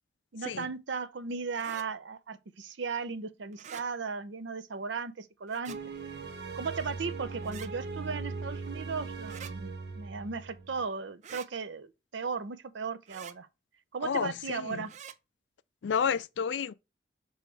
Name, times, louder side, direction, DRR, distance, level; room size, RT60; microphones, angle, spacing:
voice 1, 0.3-5.8 6.6-13.5 13.9-14.9, right 5 dB, 80° right, 0.6 m, -36 dB
sound 1, 1.5-1.9 3.5-3.9 5.5-5.8 7.4-7.7 9.2-9.5 11.2-11.5 13.1-13.4 14.9-15.2, right 8 dB, 40° right, 0.4 m, -46 dB
sound 2, 5.7-10.8, right 4 dB, 65° right, 1.1 m, -39 dB
voice 2, 14.0-14.9 15.8-16.7, left 7 dB, 80° left, 0.4 m, -31 dB
6.9 x 3.1 x 4.6 m
head